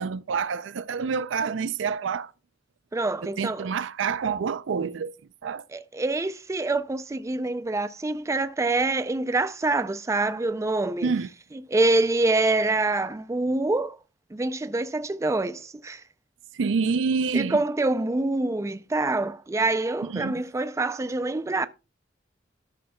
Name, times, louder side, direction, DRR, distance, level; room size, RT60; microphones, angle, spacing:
voice 1, 0.0-2.3 3.2-5.1 5.4-5.6 11.0-11.3 16.5-17.6 20.0-20.4, right 5 dB, 80° right, 0.4 m, -27 dB
voice 2, 2.9-3.7 5.7-11.1 11.7-14.0 14.3-16.0 17.3-21.7, right 2 dB, 15° right, 0.4 m, -26 dB
13.5 x 6.4 x 2.2 m
head